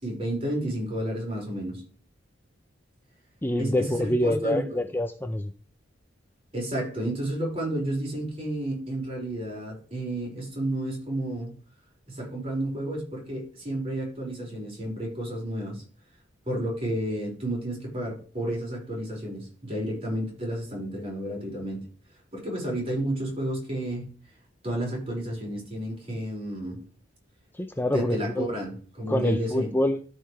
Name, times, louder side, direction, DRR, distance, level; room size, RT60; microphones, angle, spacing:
voice 1, 0.0-1.8 3.6-4.8 6.5-11.6 12.1-15.8 16.5-21.8 22.3-24.1 24.6-26.8 27.8-29.7, right 1 dB, 30° right, -2 dB, 5.2 m, -31 dB
voice 2, 3.4-5.5 27.5-28.5 29.1-30.0, left 1 dB, 10° left, 7 dB, 0.5 m, -26 dB
13.5 x 5.5 x 3.3 m, 0.40 s
head